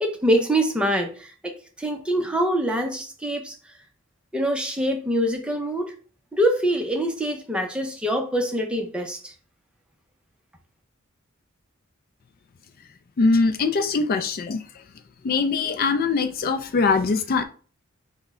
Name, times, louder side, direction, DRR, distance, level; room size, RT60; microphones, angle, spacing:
voice 1, 0.0-3.5 4.3-5.9 6.3-9.3, equal, 5° right, 0.6 m, -24 dB
voice 2, 13.2-14.6 15.2-17.4, left 4 dB, 45° left, 0.4 m, -22 dB
5.9 x 2.2 x 3.6 m
head